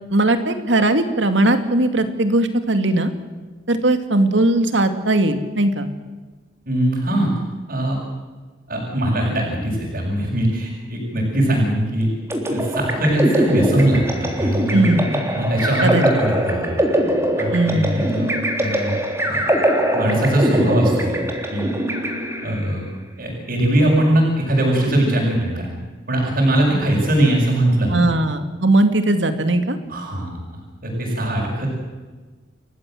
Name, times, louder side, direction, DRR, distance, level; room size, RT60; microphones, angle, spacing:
voice 1, 0.1-3.1 3.7-5.9 14.7-15.3 15.8-16.0 17.5-18.1 27.9-29.8, right 2 dB, 75° right, 8 dB, 2.4 m, -19 dB
voice 2, 6.7-7.3 7.7-8.0 8.7-12.1 12.5-14.9 15.3-16.7 17.4-18.9 19.2-19.4 19.9-21.1 21.5-21.7 22.4-22.8 23.2-25.7 26.1-28.1 29.9-31.7, right 1 dB, 55° right, -5 dB, 6.9 m, -21 dB
sound 1, 12.3-22.7, right 1 dB, 15° right, 3.3 m, -22 dB
29.5 x 15.0 x 7.9 m, 1.4 s
head